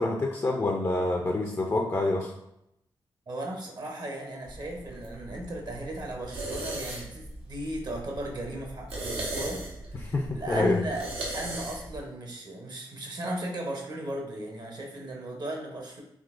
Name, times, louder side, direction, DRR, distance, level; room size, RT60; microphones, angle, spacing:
voice 1, 0.0-2.3 10.0-10.8, left 2 dB, 35° left, 0 dB, 0.4 m, -27 dB
voice 2, 3.3-9.6 10.0-16.0, right 1 dB, 50° right, 1 dB, 0.8 m, -36 dB
sound 1, 4.4-12.1, right 1 dB, 85° right, 0.8 m, -38 dB
3.7 x 2.3 x 2.5 m, 0.81 s
cardioid pair, 50°, 9 cm